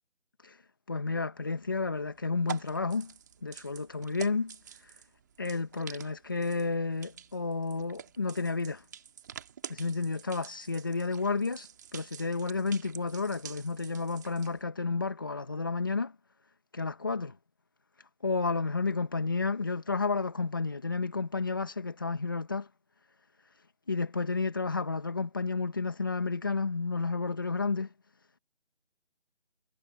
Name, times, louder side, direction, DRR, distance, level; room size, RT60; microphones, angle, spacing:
voice 1, 0.9-3.1 3.4-5.0 5.4-8.8 9.7-16.1 16.7-17.4 18.2-22.7 23.5-27.9, left 4 dB, 20° left, 1.2 m, -31 dB
sound 1, 1.4-14.6, right 8 dB, 15° right, 2.3 m, -48 dB
figure-of-eight pair, 170°, 35 cm